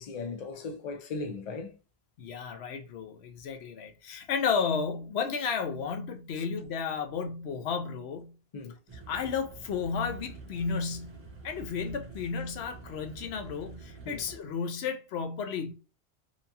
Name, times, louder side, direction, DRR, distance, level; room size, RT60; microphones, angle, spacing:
voice 1, 0.0-1.8 6.4-6.5 8.5-8.8 14.1-14.2, left 3 dB, 50° left, 0.5 m, -38 dB
voice 2, 2.2-8.3 9.1-15.7, left 6 dB, 80° left, 0.8 m, -33 dB
sound 1, 8.9-14.4, right 4 dB, 30° right, 0.8 m, -47 dB
2.8 x 2.3 x 2.7 m
omnidirectional pair, 1.1 m